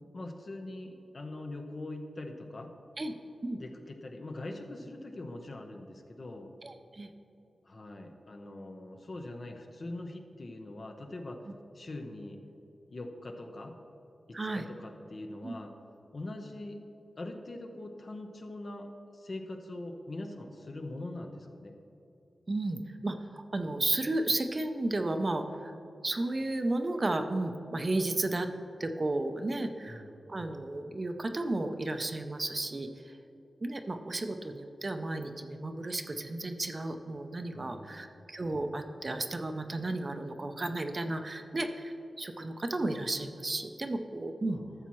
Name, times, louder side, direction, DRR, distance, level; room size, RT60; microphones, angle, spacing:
voice 1, 0.1-2.7 3.6-6.5 7.6-11.4 11.7-12.4 12.9-13.8 14.3-15.7 16.1-16.8 17.2-21.7 29.9-30.3 37.5-38.1 44.5-44.7, left 2 dB, 50° left, 4 dB, 0.8 m, -42 dB
voice 2, 6.6-7.1 14.3-14.6 15.4-15.5 22.5-25.7 26.0-28.5 28.8-30.0 30.3-33.2 33.6-44.6, right 2 dB, 35° right, 7 dB, 0.5 m, -33 dB
12.5 x 7.1 x 3.1 m, 2.9 s
wide cardioid pair, 95°, 0 cm